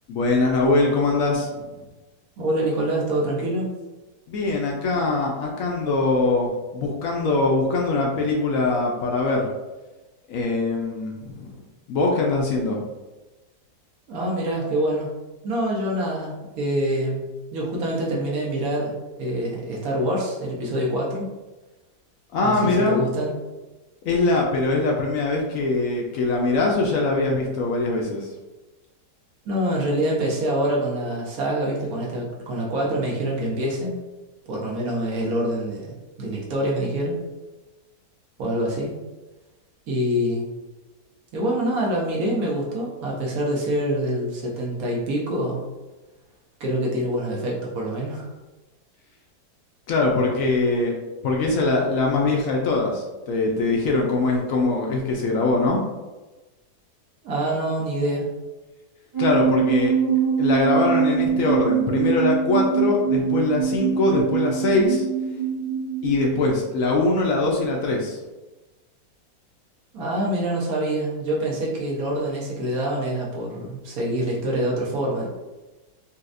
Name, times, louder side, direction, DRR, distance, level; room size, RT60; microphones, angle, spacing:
voice 1, 0.1-1.7 4.3-9.5 10.3-11.6 11.9-12.8 22.3-23.0 24.0-28.3 49.9-51.0 51.2-55.8 59.2-59.9 60.4-65.0 66.0-68.2, left 3 dB, 70° left, -1 dB, 0.8 m, -22 dB
voice 2, 2.4-3.7 14.1-15.1 15.4-18.9 19.2-21.3 22.4-23.3 29.5-33.9 34.5-37.2 38.4-39.0 39.9-40.5 41.3-45.6 46.6-48.3 57.2-58.3 69.9-75.3, right 1 dB, 65° right, -3 dB, 1.2 m, -25 dB
sound 1, 59.1-66.6, right 7 dB, 30° right, 0.6 m, -23 dB
4.1 x 2.3 x 2.5 m, 1.1 s
omnidirectional pair, 1.8 m